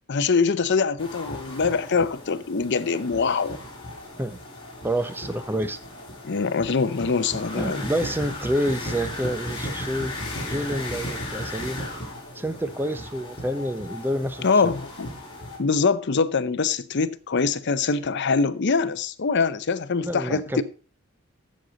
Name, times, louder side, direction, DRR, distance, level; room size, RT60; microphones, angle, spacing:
voice 1, 0.1-3.6 6.2-7.8 14.4-15.1 15.6-20.6, left 4 dB, 55° left, 0.6 m, -23 dB
sound 1, 1.0-15.6, left 1 dB, 25° left, 4.3 m, -36 dB
voice 2, 4.8-5.8 7.5-10.1 10.4-11.8 12.3-14.7 20.0-20.6, equal, 10° right, 0.5 m, -28 dB
14.5 x 6.5 x 3.9 m
head